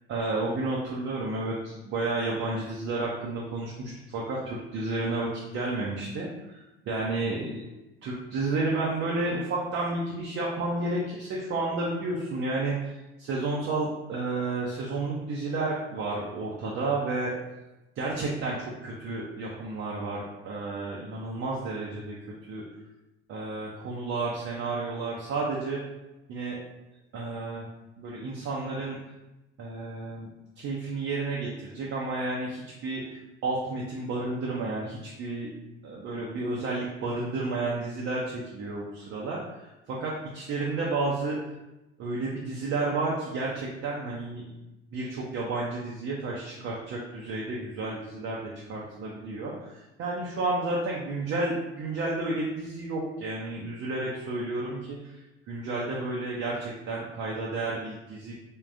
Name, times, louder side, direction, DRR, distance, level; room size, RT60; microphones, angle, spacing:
voice 1, 0.1-6.3 6.9-7.6 8.0-12.9 13.2-17.3 18.0-22.2 22.5-22.6 23.3-25.8 26.3-26.6 27.1-27.7 28.0-29.0 29.6-30.3 30.6-35.5 35.8-41.4 42.0-44.6 44.9-55.2 55.5-58.3, right 2 dB, 40° right, -4 dB, 0.7 m, -31 dB
3.6 x 2.3 x 2.6 m, 0.98 s
hypercardioid pair, 75°, 32 cm